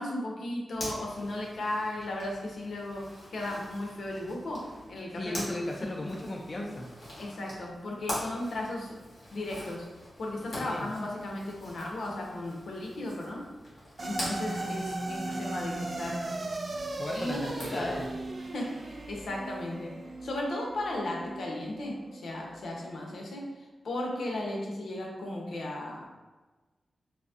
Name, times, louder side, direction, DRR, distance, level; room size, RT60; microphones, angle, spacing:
voice 1, 0.0-5.4 5.8-6.1 7.2-9.0 9.3-9.9 10.2-13.4 14.0-16.3 17.1-18.0 18.5-20.0 20.2-26.1, left 1 dB, 80° left, -1 dB, 0.7 m, -35 dB
Zipper (clothing), 0.7-18.1, left 1 dB, 55° left, 1.3 m, -44 dB
voice 2, 5.2-6.9 10.6-10.9 16.9-18.1, left 1 dB, 35° left, -1 dB, 0.3 m, -36 dB
sound 1, 14.0-22.5, right 2 dB, 45° right, 0.3 m, -37 dB
3.9 x 2.6 x 2.4 m, 1.2 s
wide cardioid pair, 130°, 0 cm